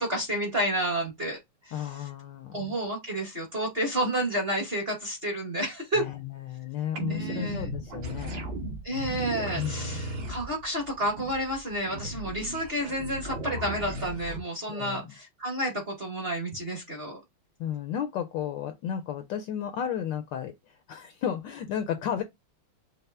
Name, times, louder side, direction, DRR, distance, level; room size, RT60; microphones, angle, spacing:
voice 1, 0.0-1.4 1.6-2.1 2.5-6.1 7.1-7.7 8.8-17.2, right 1 dB, 35° right, 1.0 m, -30 dB
voice 2, 1.7-2.7 5.9-8.4 9.6-10.0 14.7-15.1 17.6-22.2, left 9 dB, 75° left, 1.1 m, -33 dB
sound 1, 7.0-14.4, right 1 dB, 60° right, 1.8 m, -36 dB
5.5 x 2.0 x 3.3 m
omnidirectional pair, 2.4 m